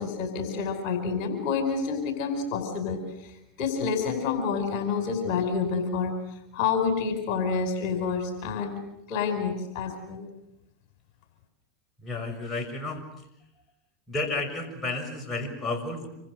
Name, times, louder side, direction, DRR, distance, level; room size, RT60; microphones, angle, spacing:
voice 1, 0.0-6.2 6.5-8.8 9.1-10.2, left 5 dB, 55° left, 6 dB, 5.1 m, -28 dB
voice 2, 12.0-13.0 14.1-16.1, left 2 dB, 20° left, 3 dB, 6.9 m, -32 dB
27.5 x 26.0 x 6.6 m, 0.81 s
hypercardioid pair, 100°, 0 cm